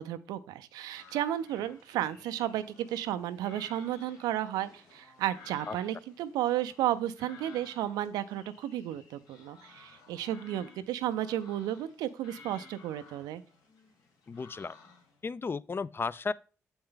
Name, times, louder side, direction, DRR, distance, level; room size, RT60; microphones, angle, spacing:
voice 1, 0.0-13.4, right 12 dB, 85° right, 0.5 m, -33 dB
sound 1, 0.9-15.2, left 4 dB, 85° left, 1.9 m, -56 dB
voice 2, 14.3-14.7 15.2-16.3, left 4 dB, 35° left, 0.4 m, -34 dB
7.7 x 4.3 x 3.7 m
supercardioid pair, 50°, 7 cm